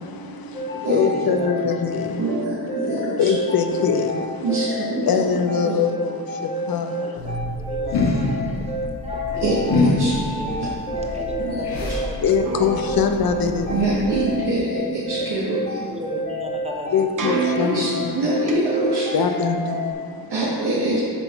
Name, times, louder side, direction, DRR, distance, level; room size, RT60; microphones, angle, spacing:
voice 1, 0.0-2.4 3.2-4.7 5.0-7.4 10.5-10.6 11.0-11.2 12.2-13.9 16.9-18.3 19.1-20.5, left 6 dB, 60° left, 6 dB, 0.7 m, -24 dB
sound 1, 0.5-19.9, equal, 25° left, 1.1 m, -29 dB
voice 2, 0.7-1.5 7.0-8.7 9.0-12.7 13.7-13.8 15.1-15.3 15.8-17.7 20.5-21.0, right 1 dB, 15° right, 1 dB, 0.9 m, -36 dB
voice 3, 2.2-3.3 4.4-5.0 5.6-5.7 9.4-9.6 10.0-10.1 11.4-11.6 13.7-15.8 17.7-17.9 18.1-19.1 20.3-21.0, right 2 dB, 75° right, -9 dB, 1.6 m, -24 dB
sound 2, 7.2-14.5, left 2 dB, 75° left, 1.5 m, -27 dB
sound 3, 12.4-18.5, right 5 dB, 50° right, 1.0 m, -33 dB
8.3 x 3.6 x 5.8 m, 2.4 s
wide cardioid pair, 100°, 40 cm